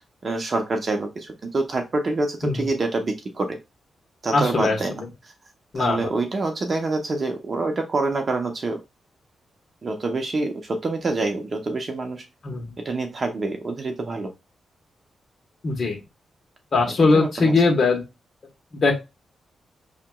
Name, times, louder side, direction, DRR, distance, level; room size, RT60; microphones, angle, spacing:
voice 1, 0.2-3.6 4.2-5.3 5.7-8.8 9.8-12.2 12.8-14.3 17.0-17.5, right 3 dB, 40° right, 5 dB, 0.7 m, -26 dB
voice 2, 4.3-5.1 5.7-6.1 12.4-12.7 15.6-16.0 16.7-18.0 18.7-18.9, left 3 dB, 45° left, 2 dB, 1.1 m, -21 dB
5.8 x 2.9 x 2.2 m, 0.25 s
wide cardioid pair, 120°, 0 cm